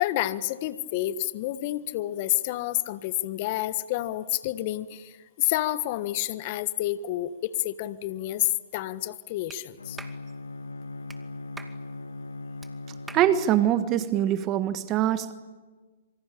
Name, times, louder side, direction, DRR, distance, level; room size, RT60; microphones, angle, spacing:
voice 1, 0.0-10.0, left 15 dB, 45° left, 14 dB, 1.3 m, -29 dB
Clapping, 9.5-9.6 10.0-10.2 11.1-11.2 11.6-11.8 12.6-12.7 13.1-13.3, right 3 dB, 10° right, 2.4 m, -43 dB
Bowed string instrument, 9.8-14.0, left 2 dB, 85° left, 1.3 m, -39 dB
voice 2, 13.1-15.3, right 11 dB, 30° right, 11 dB, 1.5 m, -23 dB
27.0 x 24.5 x 8.7 m, 1.3 s
hypercardioid pair, 120°, 0 cm